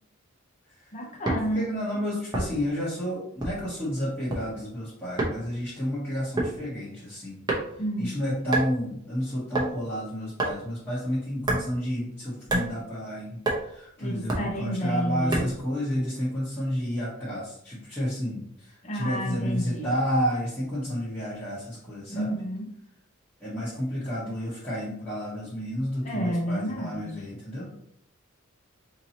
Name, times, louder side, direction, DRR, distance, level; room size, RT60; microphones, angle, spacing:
voice 1, 0.9-1.7 7.8-8.1 14.0-15.5 18.8-19.9 22.1-22.7 26.0-27.1, right 1 dB, 35° left, 1 dB, 0.8 m, -30 dB
sound 1, 1.3-1.5 2.3-2.7 3.4-3.7 4.1-4.4 5.2-5.4 6.4-6.6 7.5-7.9 8.5-8.7 9.5-9.7 10.4-10.6 11.4-11.7 12.5-12.7 13.5-13.6 14.3-14.5 15.3-15.6, right 2 dB, 20° right, 0.8 m, -27 dB
voice 2, 1.5-7.5 8.0-22.3 23.4-27.7, equal, 10° left, -10 dB, 1.1 m, -31 dB
4.5 x 2.8 x 2.8 m, 0.70 s
head